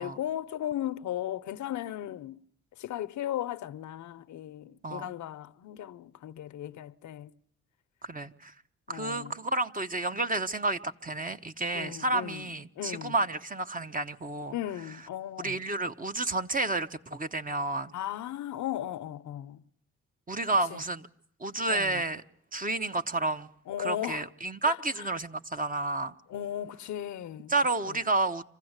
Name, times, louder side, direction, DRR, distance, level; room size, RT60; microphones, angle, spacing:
voice 1, 0.0-2.4 2.8-7.3 8.9-9.4 11.7-12.5 12.8-13.2 14.5-15.6 17.9-19.6 20.7-20.8 21.7-22.0 23.7-24.3 24.6-24.8 26.3-27.5 27.9-28.0, left 11 dB, 75° left, 0.8 m, -36 dB
voice 2, 8.0-8.5 8.9-14.5 15.4-17.9 20.3-21.1 21.4-22.2 22.5-23.5 23.8-26.1 27.5-28.4, right 2 dB, 30° right, 1.2 m, -30 dB
26.0 x 15.5 x 8.1 m
supercardioid pair, 65°, 30 cm